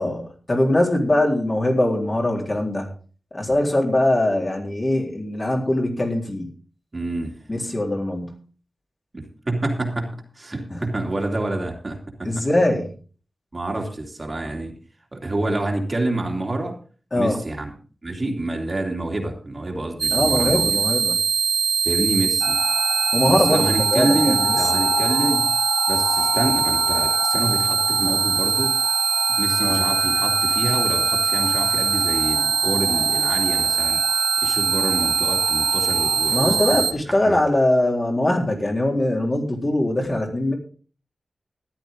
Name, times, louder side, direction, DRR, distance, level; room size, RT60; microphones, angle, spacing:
voice 1, 0.0-2.9 3.3-6.5 7.5-8.4 12.2-12.9 17.1-17.4 20.1-21.2 23.1-24.9 29.6-29.9 36.3-40.5, left 1 dB, 35° left, -1 dB, 4.0 m, -22 dB
voice 2, 6.9-7.4 9.1-12.4 13.5-14.7 15.1-16.7 17.1-17.7 18.0-20.7 21.8-22.6 23.3-25.6 25.9-28.8 29.3-34.0 34.4-37.4, right 2 dB, 35° right, 1 dB, 2.7 m, -27 dB
sound 1, 20.0-36.9, right 6 dB, 75° right, 1.2 m, -22 dB
sound 2, 22.4-36.8, left 4 dB, 80° left, 1.4 m, -30 dB
14.0 x 11.5 x 3.9 m, 0.40 s
wide cardioid pair, 115°, 0 cm